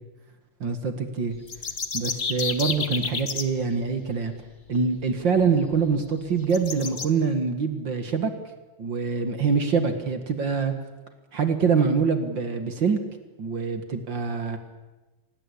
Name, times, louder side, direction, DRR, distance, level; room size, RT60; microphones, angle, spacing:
voice 1, 0.6-1.4 1.9-4.3 4.7-8.3 8.8-10.7 11.3-13.0 13.4-14.6, right 5 dB, 45° right, 8 dB, 2.0 m, -25 dB
sound 1, 1.3-3.4 5.2-5.3 5.7-5.8 6.5-7.1, left 5 dB, 55° left, 0.7 m, -30 dB
26.0 x 18.5 x 8.5 m, 1.1 s
omnidirectional pair, 3.6 m